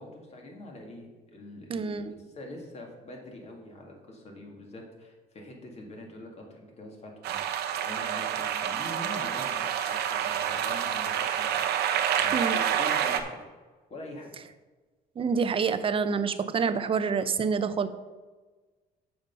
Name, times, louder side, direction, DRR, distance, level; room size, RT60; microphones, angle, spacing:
voice 1, 0.0-2.0 2.3-11.6 12.2-13.5 13.9-14.3, left 1 dB, 40° left, 1 dB, 2.0 m, -44 dB
voice 2, 1.7-2.1 12.3-12.6 15.2-17.9, right 5 dB, 30° right, 11 dB, 0.6 m, -27 dB
sound 1, 7.2-13.2, right 9 dB, 75° right, 0.8 m, -28 dB
7.2 x 5.8 x 5.3 m, 1.3 s
cardioid pair, 110°, 17 cm